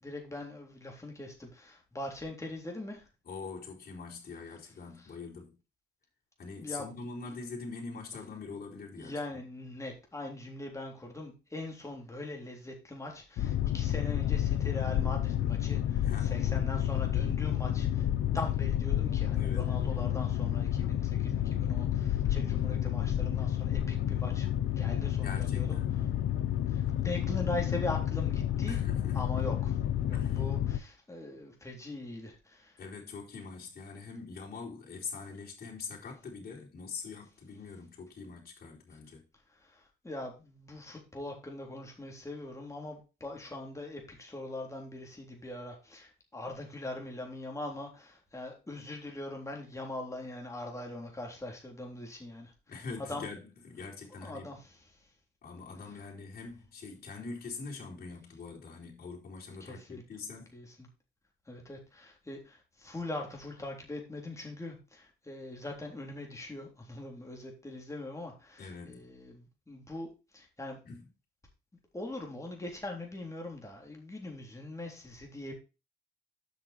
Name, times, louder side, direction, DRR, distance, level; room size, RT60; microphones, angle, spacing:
voice 1, 0.0-3.1 5.0-5.1 6.6-6.9 9.0-18.1 18.3-25.8 26.7-28.8 29.1-29.8 30.1-32.8 39.5-52.5 53.1-53.3 54.2-54.8 59.6-60.0 60.5-60.9 61.5-70.8 71.9-75.5, left 2 dB, 15° left, 3.7 m, -41 dB
voice 2, 3.2-5.6 6.4-9.4 16.0-16.4 19.3-19.7 25.2-25.9 28.7-29.2 30.1-30.4 32.8-39.2 52.7-54.6 55.4-60.5 68.6-69.0 70.8-71.1, left 4 dB, 50° left, 4.2 m, -43 dB
Boat Water vehicle, 13.4-30.8, left 11 dB, 80° left, 0.8 m, -30 dB
8.3 x 6.0 x 4.5 m
cardioid pair, 90°, 20 cm